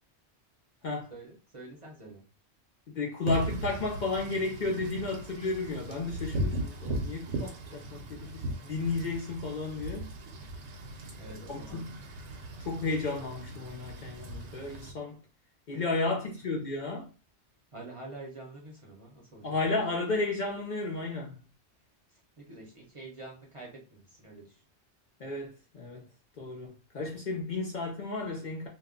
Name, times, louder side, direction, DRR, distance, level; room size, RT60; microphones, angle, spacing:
voice 1, 1.1-2.3 11.2-11.8 17.7-19.6 22.1-24.6, right 2 dB, 35° right, 0.6 m, -47 dB
voice 2, 2.9-10.1 11.5-11.9 12.6-15.2 15.7-17.1 19.4-21.4 25.2-26.1 26.4-28.7, left 3 dB, 55° left, 0.6 m, -33 dB
Wind / Rain, 3.3-14.9, right 1 dB, 85° right, 0.9 m, -38 dB
2.3 x 2.1 x 3.6 m
omnidirectional pair, 1.1 m